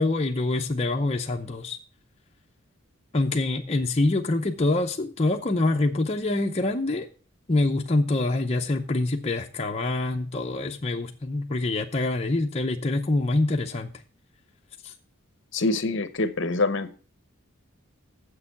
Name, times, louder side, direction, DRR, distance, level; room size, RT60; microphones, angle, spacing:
voice 1, 0.0-1.8 3.1-7.1 7.5-13.9 14.8-14.9, left 2 dB, 30° left, 0.6 m, -25 dB
voice 2, 15.5-16.9, left 3 dB, 55° left, 0.9 m, -25 dB
7.5 x 6.7 x 7.0 m
head